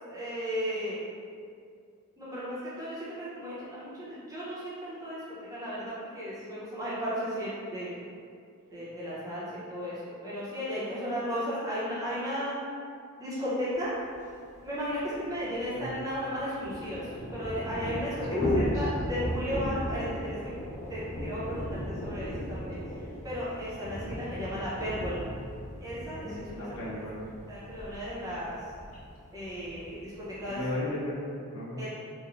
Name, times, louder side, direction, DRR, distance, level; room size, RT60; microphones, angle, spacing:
voice 1, 0.1-1.0 2.2-7.9 8.7-12.6 13.2-13.9 14.6-18.1 18.5-20.5 20.9-25.2 25.8-27.0 27.5-28.6 29.3-30.1 30.4-30.6 31.8-31.9, equal, 15° right, -10 dB, 0.7 m, -35 dB
Thunder / Rain, 14.1-14.2 14.4-14.5 14.8-30.7, equal, 10° left, 0.3 m, -37 dB
voice 2, 18.3-18.9 26.2-27.3 30.5-31.8, left 1 dB, 80° left, -6 dB, 0.7 m, -33 dB
3.0 x 2.2 x 2.4 m, 2.3 s
head